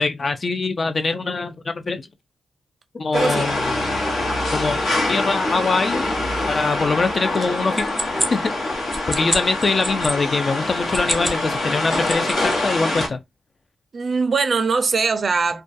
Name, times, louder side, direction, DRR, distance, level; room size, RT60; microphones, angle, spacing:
voice 1, 0.0-2.1 2.9-3.6 4.5-4.8 5.1-6.1 6.5-7.9 8.3-8.5 9.1-13.2, left 3 dB, 45° left, 0.4 m, -23 dB
sound 1, 3.1-13.1, left 2 dB, 70° left, 1.0 m, -24 dB
voice 2, 3.1-3.5 13.9-15.6, right 4 dB, 50° right, 0.4 m, -21 dB
sound 2, 7.3-10.2 10.8-11.4 11.7-12.6, equal, ahead, 0.6 m, -28 dB
2.3 x 2.2 x 2.5 m
cardioid pair, 90°, 0 cm